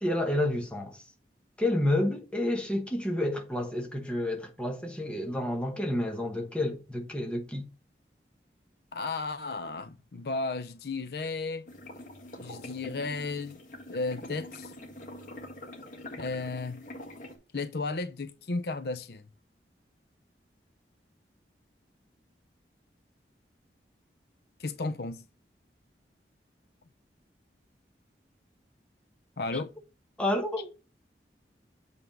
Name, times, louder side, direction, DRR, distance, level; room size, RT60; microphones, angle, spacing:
voice 1, 0.0-1.0 1.6-7.6 29.5-29.6 30.2-30.7, left 1 dB, 5° left, 1.1 m, -30 dB
voice 2, 8.9-11.6 12.4-13.6 13.9-14.7 16.2-16.8 17.5-19.2 24.6-25.2 29.4-29.7, left 3 dB, 65° left, 0.6 m, -34 dB
sound 1, 11.7-17.4, left 1 dB, 45° left, 1.8 m, -44 dB
7.9 x 3.6 x 4.8 m
head